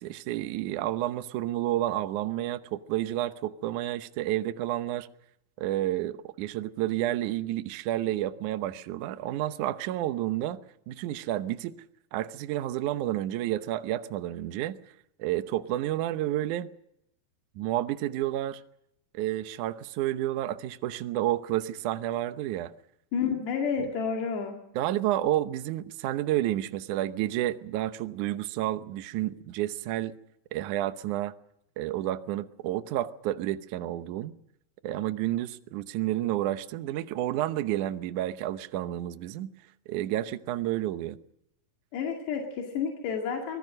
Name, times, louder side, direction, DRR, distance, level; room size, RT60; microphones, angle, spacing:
voice 1, 0.0-5.1 5.6-10.6 10.9-11.8 12.1-14.8 15.2-16.7 17.5-18.6 19.1-22.7 24.7-30.1 30.5-31.3 31.8-34.3 34.8-39.5 39.9-41.2, right 14 dB, 75° right, 1.9 m, -30 dB
voice 2, 23.1-24.6 41.9-43.6, left 6 dB, 85° left, 4.4 m, -30 dB
24.5 x 19.0 x 6.5 m
omnidirectional pair, 4.7 m